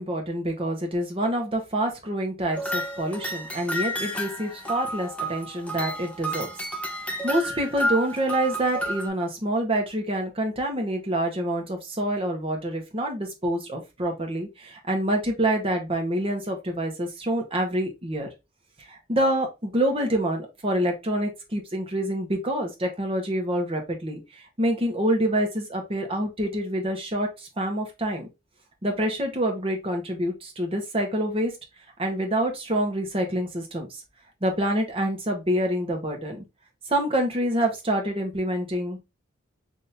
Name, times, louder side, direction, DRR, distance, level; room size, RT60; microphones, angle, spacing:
voice 1, 0.0-6.5 7.2-18.3 18.9-28.3 28.8-31.5 32.0-34.0 34.4-36.4 36.9-39.0, right 1 dB, 30° right, 3 dB, 1.0 m, -27 dB
sound 1, 2.5-9.1, equal, 5° left, 0.6 m, -31 dB
4.2 x 2.8 x 3.3 m, 0.24 s
head